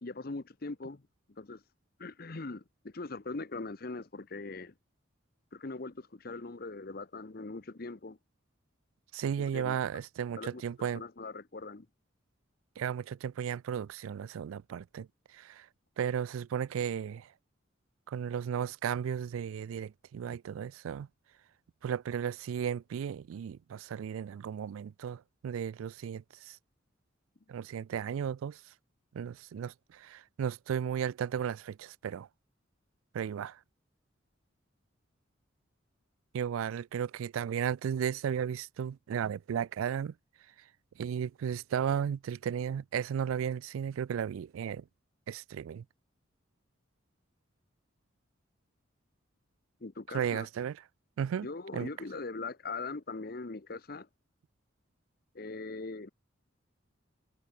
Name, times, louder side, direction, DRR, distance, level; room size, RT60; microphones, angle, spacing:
voice 1, 0.0-1.0 1.4-1.6 2.0-4.7 5.5-8.2 9.5-9.8 10.4-11.9 49.8-50.5 51.4-54.1 55.3-56.1, left 3 dB, 45° left, 0.8 m, -41 dB
voice 2, 9.1-11.0 12.8-15.1 15.3-15.7 16.0-17.3 18.1-21.1 21.8-26.6 27.5-28.6 29.1-32.3 33.1-33.6 36.3-40.1 41.0-44.8 45.3-45.8 50.1-50.8 51.2-51.5 51.7-51.9, right 8 dB, 90° right, 0.3 m, -34 dB
head